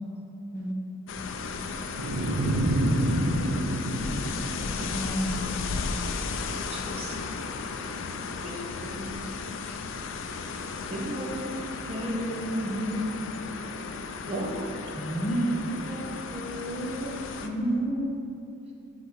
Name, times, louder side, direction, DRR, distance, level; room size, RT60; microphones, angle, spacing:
sound 1, 1.1-17.5, left 4 dB, 60° left, 0.4 m, -35 dB
sound 2, 2.0-5.2, right 1 dB, 90° right, 0.8 m, -27 dB
voice 1, 4.6-5.5 8.5-8.6 12.6-13.2 14.9-15.5 17.4-18.0, right 1 dB, 10° left, -4 dB, 0.8 m, -30 dB
voice 2, 6.7-7.2 7.8-7.9 8.4-9.2 9.7-9.8 10.9-11.5 11.9-13.1 14.3-14.7 15.3-16.0 16.3-17.2, equal, 30° right, -2 dB, 0.8 m, -35 dB
voice 3, 13.9-14.3, right 2 dB, 55° right, 3 dB, 0.4 m, -61 dB
7.0 x 3.7 x 4.6 m, 2.8 s
head